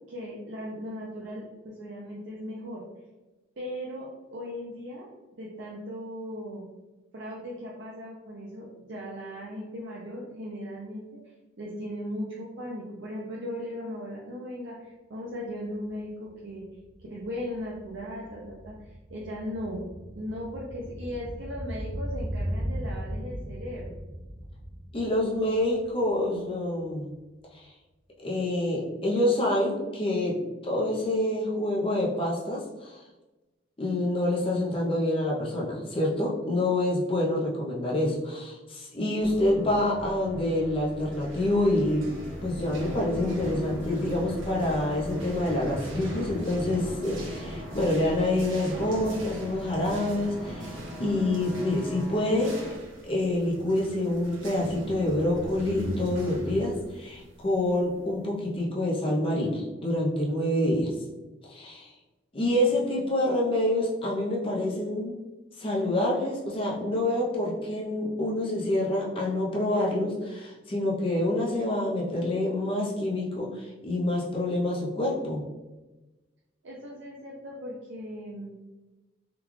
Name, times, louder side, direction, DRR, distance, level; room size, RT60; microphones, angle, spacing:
voice 1, 0.1-2.8 3.6-5.1 5.4-6.7 7.1-11.0 11.6-16.6 17.1-19.8 20.1-23.9 76.6-78.5, equal, 65° right, -4 dB, 0.5 m, -37 dB
sound 1, 15.9-16.0 16.2-26.6 26.9-27.0, equal, 20° right, 0.5 m, -37 dB
voice 2, 24.9-27.1 27.5-27.7 28.2-33.0 33.8-42.1 42.4-50.7 51.0-52.6 53.0-60.9 61.5-61.9 62.3-65.2 65.6-75.4, left 1 dB, 30° left, -3 dB, 0.6 m, -27 dB
sound 2, 39.2-52.8, equal, 5° left, 0.9 m, -41 dB
sound 3, 40.9-58.3, equal, 85° right, 1.0 m, -41 dB
3.7 x 2.3 x 3.1 m, 1.1 s
head